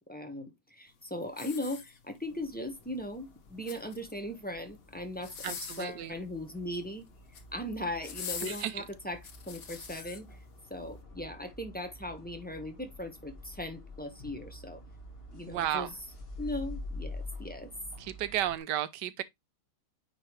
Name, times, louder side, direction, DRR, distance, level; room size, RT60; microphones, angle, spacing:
voice 1, 0.0-7.1 7.5-10.4 10.7-14.8 15.3-15.9 16.4-17.7, left 1 dB, 5° left, 0.9 m, -39 dB
sound 1, 1.3-2.3 3.4-4.2 5.1-6.0 7.1-7.5 8.0-10.2 10.8-10.9, left 7 dB, 55° left, 1.4 m, -43 dB
sound 2, 2.2-18.6, left 2 dB, 35° left, 1.7 m, -48 dB
voice 2, 5.4-6.1 8.4-8.8 15.5-15.9 18.0-19.2, right 11 dB, 80° right, 1.3 m, -33 dB
9.3 x 3.6 x 3.2 m
omnidirectional pair, 1.9 m